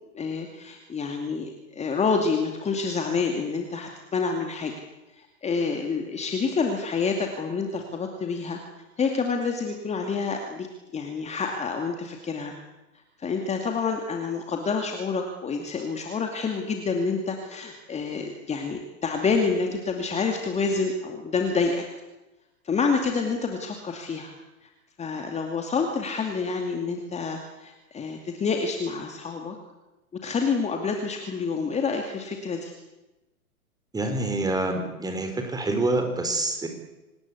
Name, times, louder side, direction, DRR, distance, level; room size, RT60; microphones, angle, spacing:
voice 1, 0.1-4.7 5.1-8.6 9.0-10.7 10.9-12.5 13.2-21.9 22.6-24.3 24.6-24.7 25.0-29.6 30.2-32.7, left 4 dB, 15° left, 3 dB, 2.5 m, -28 dB
voice 2, 33.9-36.7, right 2 dB, 10° right, 5 dB, 4.1 m, -26 dB
26.0 x 19.5 x 8.3 m, 1.1 s
figure-of-eight pair, 105°, 44 cm